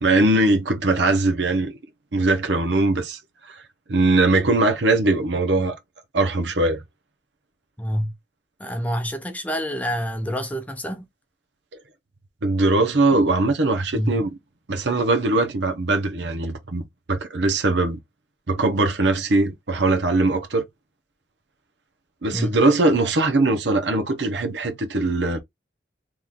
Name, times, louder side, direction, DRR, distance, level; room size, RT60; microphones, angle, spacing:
voice 1, 0.0-1.8 2.1-3.2 3.5-3.6 3.9-5.8 6.1-6.8 12.4-14.3 14.7-16.8 17.1-18.0 18.5-20.6 22.2-25.4, right 2 dB, 75° right, 0.9 m, -21 dB
voice 2, 7.8-8.1 8.6-11.1 13.9-14.2 22.3-22.6, equal, 10° left, 0.6 m, -27 dB
3.7 x 3.1 x 2.5 m
head